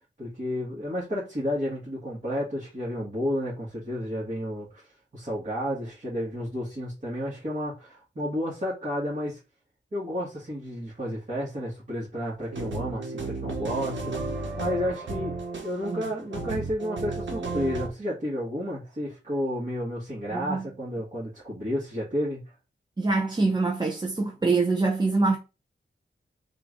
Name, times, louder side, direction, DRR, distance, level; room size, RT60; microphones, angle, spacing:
voice 1, 0.2-4.9 5.1-9.4 9.9-15.4 15.6-22.5, equal, 40° right, 1.8 m, -31 dB
sound 1, 12.4-17.9, right 3 dB, 85° right, 1.0 m, -33 dB
voice 2, 20.3-20.7 23.0-25.4, right 3 dB, 20° right, 0.6 m, -25 dB
3.7 x 2.6 x 4.7 m
wide cardioid pair, 105°, 19 cm